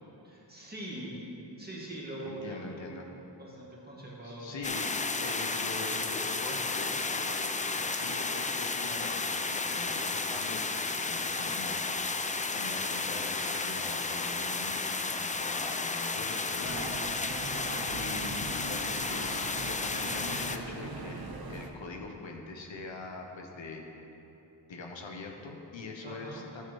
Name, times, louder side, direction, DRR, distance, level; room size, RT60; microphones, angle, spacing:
voice 1, 0.2-1.2 1.6-3.1 3.4-4.5 26.0-26.4, right 1 dB, 20° right, -5 dB, 2.1 m, -42 dB
voice 2, 2.2-3.1 4.2-4.9 5.2-7.5 7.9-11.8 12.5-17.0 17.9-24.2 24.7-26.6, left 3 dB, 75° left, 2 dB, 0.9 m, -43 dB
sound 1, 4.6-20.6, left 3 dB, 20° left, 0.3 m, -33 dB
sound 2, 16.6-21.7, right 3 dB, 55° right, 0.8 m, -41 dB
12.0 x 6.7 x 3.1 m, 3.0 s
cardioid pair, 55°, 45 cm